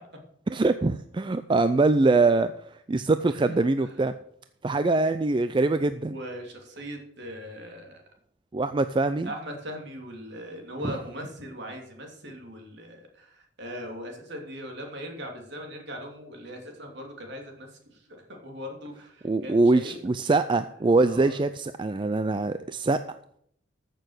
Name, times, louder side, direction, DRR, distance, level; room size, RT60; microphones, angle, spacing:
voice 1, 0.5-4.1 4.6-6.1 8.5-9.3 10.8-10.9 19.2-23.0, right 3 dB, 25° right, 11 dB, 0.4 m, -23 dB
voice 2, 3.3-4.0 6.0-8.0 9.2-20.0 21.1-21.4, equal, 55° right, 2 dB, 3.0 m, -40 dB
14.5 x 6.7 x 6.5 m, 0.67 s
head